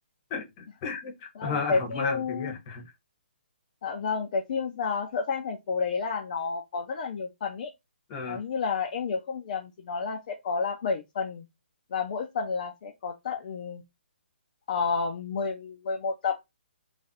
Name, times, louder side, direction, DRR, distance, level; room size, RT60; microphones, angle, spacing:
voice 1, 0.3-2.9 8.1-8.4, left 4 dB, 25° left, 0.9 m, -34 dB
voice 2, 1.4-2.5 3.8-7.7 8.3-11.5 11.9-13.8 14.7-16.6, left 5 dB, 45° left, 0.5 m, -30 dB
3.1 x 2.5 x 4.0 m
hypercardioid pair, 160°, 6 cm